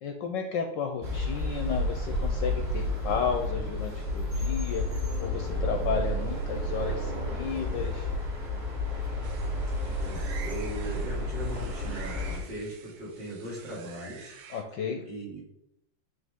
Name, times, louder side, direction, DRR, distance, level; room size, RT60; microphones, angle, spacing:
voice 1, 0.0-8.1 14.5-15.1, left 6 dB, 70° left, 3 dB, 1.1 m, -33 dB
sound 1, 1.0-12.4, left 1 dB, 30° right, 1.7 m, -31 dB
sound 2, 9.2-14.6, right 7 dB, 85° right, 1.7 m, -48 dB
voice 2, 9.8-14.3 15.1-15.4, right 1 dB, 55° right, -7 dB, 3.5 m, -39 dB
9.2 x 3.4 x 3.6 m, 0.79 s
omnidirectional pair, 2.4 m